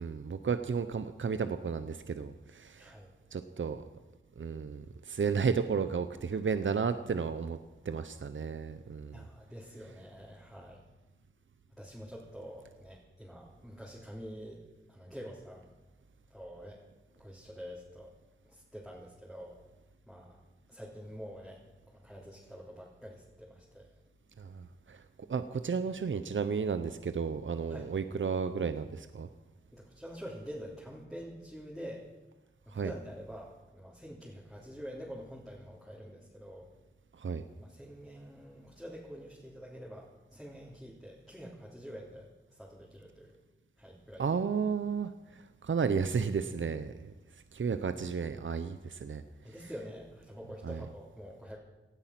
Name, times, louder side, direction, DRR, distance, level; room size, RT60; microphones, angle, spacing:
voice 1, 0.0-2.9 3.3-3.9 4.4-7.6 7.8-9.2 24.4-25.0 25.3-29.3 32.7-32.9 37.1-37.4 44.2-47.1 47.5-49.2 50.6-50.8, right 5 dB, 70° right, 10 dB, 0.8 m, -33 dB
voice 2, 2.8-3.1 9.1-10.8 11.8-15.7 16.3-16.9 17.1-18.1 18.4-19.6 20.1-20.4 20.7-23.9 27.7-27.9 29.7-32.0 32.6-36.7 37.6-42.2 42.5-43.4 43.8-44.2 49.4-51.6, equal, ahead, -5 dB, 3.4 m, -47 dB
18.5 x 13.0 x 6.0 m, 1.1 s
wide cardioid pair, 75°, 20 cm